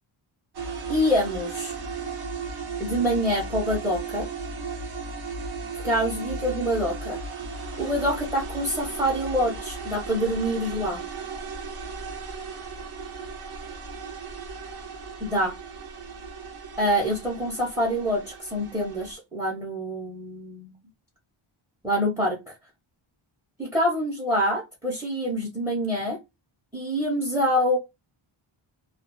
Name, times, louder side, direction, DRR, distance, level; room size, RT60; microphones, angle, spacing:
sound 1, 0.5-19.1, right 4 dB, 50° right, 0.7 m, -36 dB
voice 1, 0.9-1.7 2.8-4.3 5.8-7.2 7.8-11.0 15.2-15.5 16.8-20.7 21.8-22.5 23.6-26.2 26.7-27.8, equal, 5° right, -1 dB, 0.6 m, -26 dB
2.3 x 2.3 x 2.9 m, 0.22 s
wide cardioid pair, 155°, 50 cm